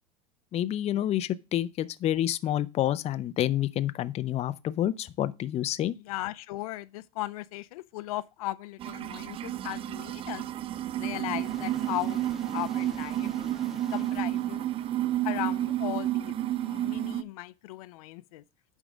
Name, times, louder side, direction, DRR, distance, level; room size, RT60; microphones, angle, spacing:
voice 1, 0.5-5.9, left 12 dB, 35° left, 0.6 m, -28 dB
voice 2, 6.0-10.4 11.0-12.2 12.5-13.3 13.9-14.6 15.2-16.3 16.6-18.4, left 17 dB, 75° left, 0.6 m, -37 dB
sound 1, 8.8-17.2, right 13 dB, 30° right, 0.4 m, -31 dB
sound 2, 10.0-15.9, left 1 dB, ahead, 1.1 m, -50 dB
8.8 x 3.7 x 6.2 m
supercardioid pair, 110°, 18 cm